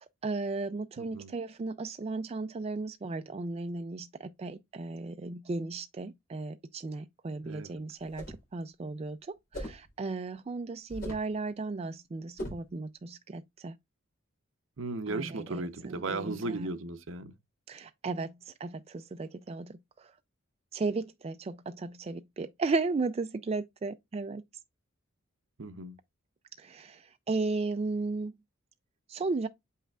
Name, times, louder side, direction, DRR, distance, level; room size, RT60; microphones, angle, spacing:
voice 1, 0.2-8.2 8.5-9.2 9.5-13.8 15.1-16.7 17.7-19.7 20.7-24.4 26.6-27.0 27.3-28.3 29.1-29.5, right 3 dB, 30° right, 0.3 m, -35 dB
voice 2, 1.0-1.3 7.4-7.7 14.8-17.3 25.6-25.9, right 3 dB, 65° right, 0.7 m, -36 dB
sound 1, 8.0-8.5 9.5-9.9 10.9-11.3 12.4-12.7, equal, 45° left, 4.2 m, -39 dB
7.1 x 5.6 x 2.4 m
head